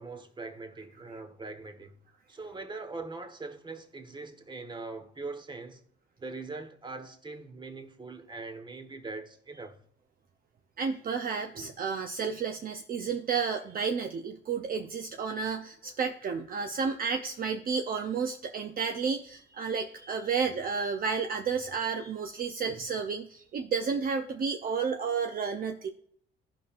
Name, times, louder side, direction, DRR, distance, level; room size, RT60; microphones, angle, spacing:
voice 1, 0.0-2.0 2.3-5.8 6.2-9.8, right 3 dB, 25° right, 1.3 m, -42 dB
voice 2, 10.8-25.9, right 5 dB, 45° right, 0.6 m, -31 dB
15.5 x 5.7 x 2.5 m
cardioid pair, 90°, 20 cm